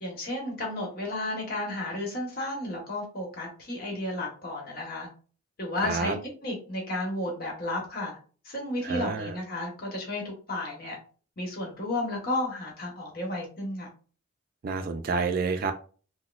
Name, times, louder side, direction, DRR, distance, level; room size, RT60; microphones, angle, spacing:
voice 1, 0.0-5.1 5.6-6.2 6.4-8.2 8.4-11.0 11.4-13.9, left 1 dB, 45° left, -1 dB, 1.1 m, -33 dB
voice 2, 5.8-6.2 8.8-9.4 14.6-15.7, right 4 dB, 45° right, 6 dB, 0.3 m, -29 dB
4.0 x 2.1 x 2.3 m, 0.39 s
head